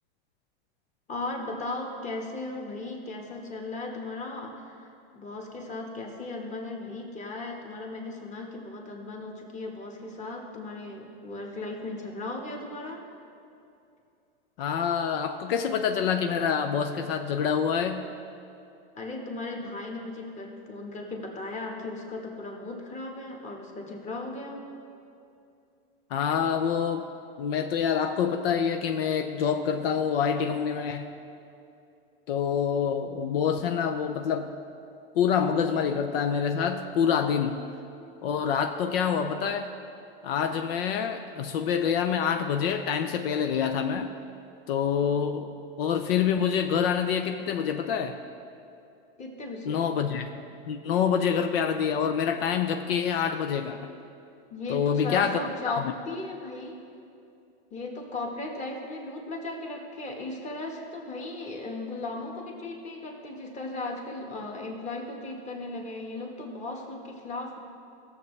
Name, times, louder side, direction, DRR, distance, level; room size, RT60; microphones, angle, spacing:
voice 1, 1.1-13.0 19.0-24.6 49.2-49.8 54.5-56.8 57.7-67.6, left 2 dB, 25° left, 0 dB, 1.5 m, -37 dB
voice 2, 14.6-18.0 26.1-27.1 27.4-31.1 32.3-34.5 35.1-37.6 38.2-39.7 40.2-44.1 44.7-45.5 45.8-48.2 49.6-50.3 50.6-53.9 54.7-55.9, left 7 dB, 75° left, 6 dB, 0.7 m, -26 dB
17.5 x 7.2 x 3.3 m, 2.6 s
supercardioid pair, 140°, 29 cm